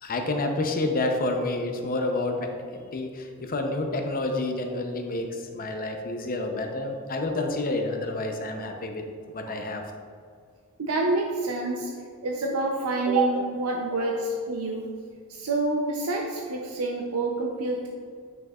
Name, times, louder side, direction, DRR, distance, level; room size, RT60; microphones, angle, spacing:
voice 1, 0.0-9.8 14.0-14.1, left 2 dB, 40° left, 4 dB, 0.7 m, -29 dB
voice 2, 10.8-11.9 12.2-14.9 15.3-17.9, right 2 dB, 80° right, 0 dB, 0.6 m, -27 dB
8.9 x 6.3 x 2.4 m, 2.1 s
head